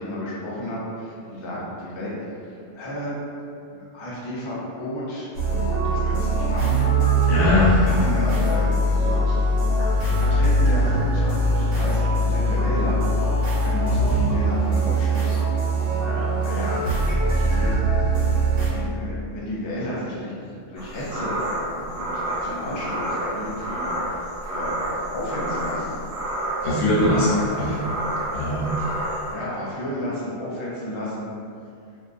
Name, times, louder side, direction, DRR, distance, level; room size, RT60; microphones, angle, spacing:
voice 1, 0.0-2.1 2.4-3.2 3.7-7.3 7.8-9.5 10.2-13.0 13.6-15.5 16.4-17.7 18.2-23.9 24.5-24.8 25.1-26.0 27.0-27.8 29.3-31.3, left 1 dB, 40° left, -7 dB, 0.4 m, -32 dB
sound 1, 5.3-18.7, right 1 dB, 85° right, 1.2 m, -21 dB
voice 2, 7.3-7.8 16.0-16.3 26.6-27.8 28.3-28.7, left 1 dB, 75° left, -7 dB, 1.1 m, -21 dB
sound 2, 20.8-29.3, right 1 dB, 60° right, 0.8 m, -29 dB
2.6 x 2.4 x 2.5 m, 2.4 s
omnidirectional pair, 1.3 m